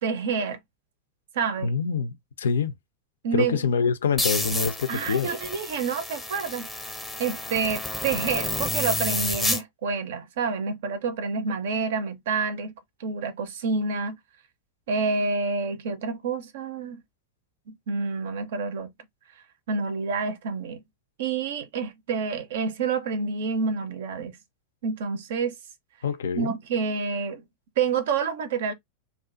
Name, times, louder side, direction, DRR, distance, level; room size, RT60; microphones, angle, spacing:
voice 1, 0.0-0.6 1.3-1.7 3.2-3.6 4.9-6.7 7.2-12.7 13.0-14.2 14.9-17.0 17.7-18.9 19.7-20.8 21.2-24.3 24.8-25.6 26.4-27.4 27.8-28.7, right 5 dB, 55° right, 0.5 m, -28 dB
voice 2, 1.6-2.7 3.3-5.3 26.0-26.6, left 6 dB, 65° left, 0.4 m, -25 dB
sound 1, 4.2-9.6, left 2 dB, ahead, 0.6 m, -30 dB
2.4 x 2.3 x 2.5 m
figure-of-eight pair, 90°, 0 cm